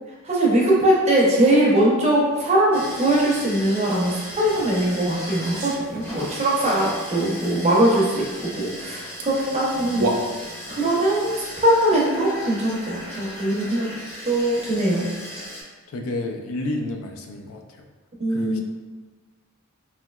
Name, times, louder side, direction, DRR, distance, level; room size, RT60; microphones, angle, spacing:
voice 1, 0.2-10.1 10.7-13.9 14.2-15.0 18.2-18.6, right 1 dB, 30° right, -4 dB, 0.6 m, -21 dB
sound 1, 2.7-15.6, equal, 10° left, 0.6 m, -37 dB
sound 2, 4.4-4.7 5.3-6.3 8.9-9.0 9.2-9.3 9.7-10.7, right 2 dB, 80° right, 0.4 m, -29 dB
voice 2, 15.9-17.8 18.3-18.6, left 2 dB, 75° left, 3 dB, 0.4 m, -30 dB
3.2 x 2.8 x 2.2 m, 1.3 s
head